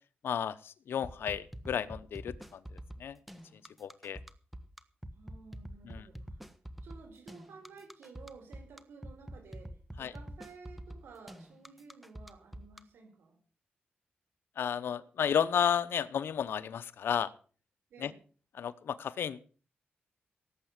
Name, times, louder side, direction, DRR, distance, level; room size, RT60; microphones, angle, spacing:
voice 1, 0.2-3.2 3.8-4.2 5.8-6.1 10.0-10.1 14.6-17.3 18.0-18.1 18.6-19.4, left 8 dB, 80° left, 12 dB, 1.0 m, -33 dB
sound 1, 1.0-12.8, equal, ahead, 1.4 m, -45 dB
voice 2, 5.1-6.4 6.8-13.4 17.9-18.2, right 4 dB, 90° right, 2 dB, 4.7 m, -53 dB
18.0 x 8.2 x 6.6 m, 0.41 s
cardioid pair, 80°, 4 cm